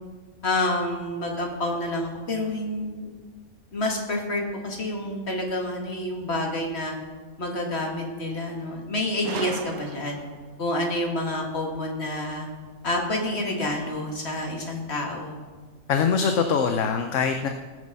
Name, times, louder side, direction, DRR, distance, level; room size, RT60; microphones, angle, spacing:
voice 1, 0.4-3.1 3.7-7.0 7.4-10.2 10.6-12.5 12.8-15.4, left 1 dB, 50° left, 1 dB, 2.2 m, -28 dB
Gunshot gunfire, 9.2-10.5, right 9 dB, 85° right, 1.1 m, -36 dB
voice 2, 15.9-17.5, left 6 dB, 65° left, 5 dB, 1.0 m, -23 dB
19.0 x 6.5 x 5.4 m, 1.4 s
omnidirectional pair, 1.5 m